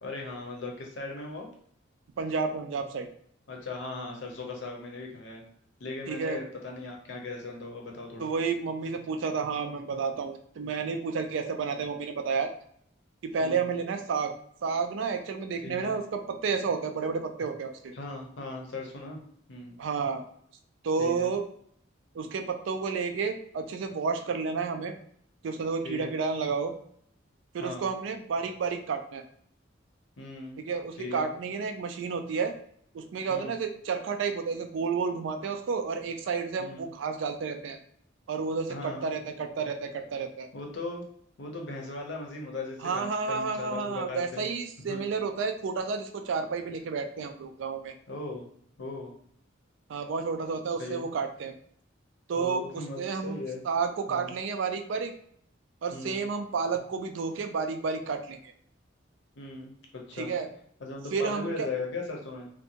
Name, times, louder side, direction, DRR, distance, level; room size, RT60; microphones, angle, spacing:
voice 1, 0.0-1.5 3.5-5.4 5.8-8.3 13.4-13.7 15.6-15.9 17.9-19.2 19.5-19.8 21.0-21.3 25.8-26.1 27.6-27.9 30.2-30.6 31.0-31.3 33.3-33.5 36.6-36.9 38.7-39.1 40.5-41.0 41.4-44.5 44.9-45.0 48.1-48.5 48.8-49.1 50.8-51.1 52.4-53.6 54.1-54.3 55.9-56.2 59.4-60.3 60.8-62.5, left 3 dB, 65° left, 1 dB, 0.6 m, -38 dB
voice 2, 2.2-3.1 6.1-6.4 8.2-12.5 13.2-14.3 14.6-17.9 19.8-20.2 20.8-21.4 22.1-24.9 25.4-26.7 27.5-29.2 30.7-32.5 32.9-37.8 38.3-40.5 42.8-47.9 49.9-51.5 52.3-53.4 53.6-55.1 55.8-58.5 60.1-60.5 61.1-61.7, right 5 dB, 70° right, 7 dB, 0.3 m, -31 dB
2.6 x 2.2 x 2.8 m, 0.66 s
head